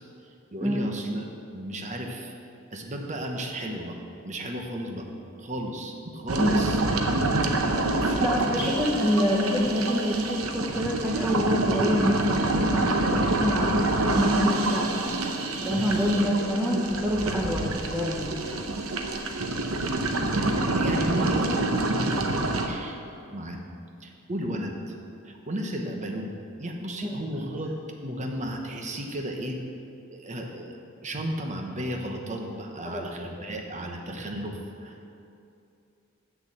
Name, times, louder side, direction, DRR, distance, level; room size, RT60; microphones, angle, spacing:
voice 1, 0.5-1.2 1.5-2.3 2.7-4.0 4.2-5.1 5.4-6.8 8.0-8.7 20.5-23.0 23.3-23.6 24.0-24.7 25.2-26.3 26.6-27.7 28.0-29.6 30.1-30.8 31.0-35.1, equal, 35° right, 2 dB, 1.0 m, -34 dB
sound 1, 6.3-22.7, right 2 dB, 80° right, 0.8 m, -27 dB
voice 2, 8.2-14.9 15.6-18.6 27.0-27.1 32.9-33.0, equal, 10° right, -4 dB, 0.8 m, -26 dB
7.9 x 6.7 x 7.5 m, 2.6 s
head